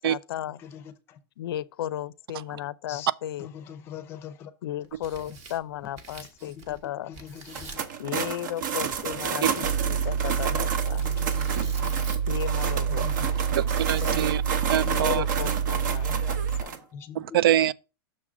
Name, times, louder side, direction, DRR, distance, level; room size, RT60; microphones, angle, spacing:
voice 1, 0.0-0.6 1.4-3.5 4.6-7.1 8.0-11.0 12.3-13.4 14.8-16.8, left 12 dB, 75° left, 0.5 m, -35 dB
voice 2, 0.6-1.2 2.9-3.1 3.4-4.5 5.2-5.4 6.2-7.9 9.5-9.7 10.4-12.1 12.9-13.3 13.9-14.4 15.1-16.3 16.6-17.5, left 9 dB, 20° left, 0.6 m, -44 dB
Tearing, 4.8-6.9 7.1-7.9 8.9-12.4 13.7-14.5, right 4 dB, 25° right, 0.8 m, -46 dB
sound 1, 7.5-16.8, right 7 dB, 55° right, 0.9 m, -31 dB
Mechanical fan, 9.6-16.6, right 7 dB, 85° right, 2.1 m, -27 dB
voice 3, 13.6-14.4 14.7-15.2 17.3-17.7, right 11 dB, 70° right, 0.4 m, -24 dB
6.5 x 3.8 x 6.0 m
supercardioid pair, 175°, 12 cm